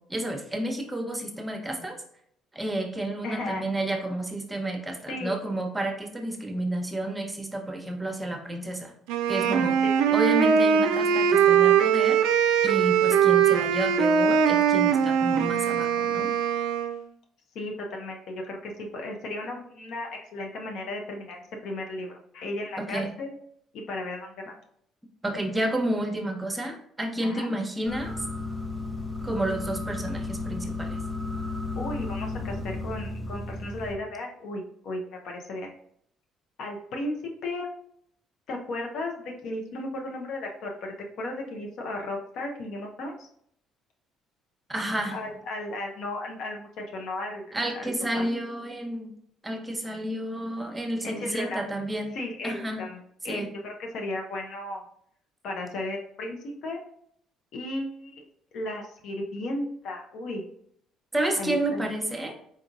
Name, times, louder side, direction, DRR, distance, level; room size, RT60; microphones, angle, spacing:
voice 1, 0.1-2.0 2.5-8.9 9.3-9.8 10.1-12.2 12.6-16.3 22.8-23.1 25.2-28.1 29.2-31.0 44.7-45.2 47.5-49.1 49.4-52.2 52.4-52.8 53.2-53.5 61.1-62.4, right 1 dB, 15° right, 3 dB, 0.9 m, -30 dB
voice 2, 3.2-3.6 5.1-5.3 9.4-10.1 17.5-23.3 23.7-24.5 27.2-27.5 31.8-35.7 36.6-37.2 37.4-37.7 38.5-43.3 45.1-47.9 48.1-48.3 51.0-51.6 52.1-54.8 55.4-56.8 57.5-58.2 58.5-60.4 61.4-61.8, left 2 dB, 65° left, 2 dB, 0.7 m, -35 dB
Wind instrument woodwind instrument, 9.1-17.0, right 8 dB, 75° right, 0.3 m, -21 dB
sound 1, 27.9-34.0, left 3 dB, 10° left, 0.8 m, -33 dB
4.0 x 3.7 x 2.5 m, 0.69 s
hypercardioid pair, 55°, 0 cm